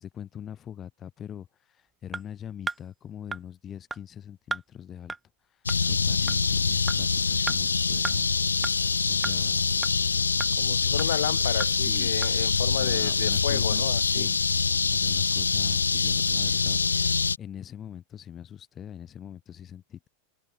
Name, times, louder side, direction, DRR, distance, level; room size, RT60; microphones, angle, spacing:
voice 1, 0.0-1.5 2.0-5.1 5.9-8.3 9.1-9.7 11.8-12.2 12.7-14.4 14.9-16.8 17.4-20.1, left 9 dB, 25° left, 2.6 m, -42 dB
sound 1, 2.1-2.2 2.7-2.8 3.3-3.4 3.9-4.0 4.5-4.6 5.1-5.2 5.7-5.8 6.3-6.4 6.9-7.0 7.5-7.6 8.0-8.2 8.6-8.7 9.2-9.3 9.8-9.9 10.4-10.5 11.0-11.1 11.6-11.7 12.2-12.3, right 4 dB, 10° right, 0.9 m, -33 dB
sound 2, 5.7-17.4, left 5 dB, 75° left, 1.1 m, -25 dB
voice 2, 10.6-14.3, left 12 dB, 60° left, 2.4 m, -32 dB
figure-of-eight pair, 90°, 0 cm